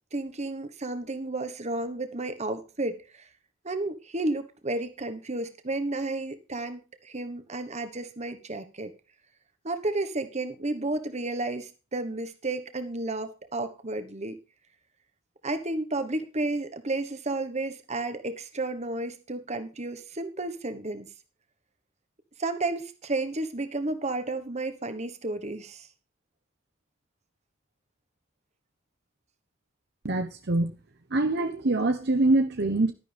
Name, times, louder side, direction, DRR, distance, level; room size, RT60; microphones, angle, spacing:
voice 1, 0.1-3.3 3.6-8.9 9.6-14.4 15.4-21.1 22.4-25.9, right 2 dB, 35° right, 1.3 m, -32 dB
voice 2, 30.0-30.7 31.1-32.9, right 2 dB, 50° right, 0.9 m, -24 dB
12.0 x 10.5 x 3.5 m
head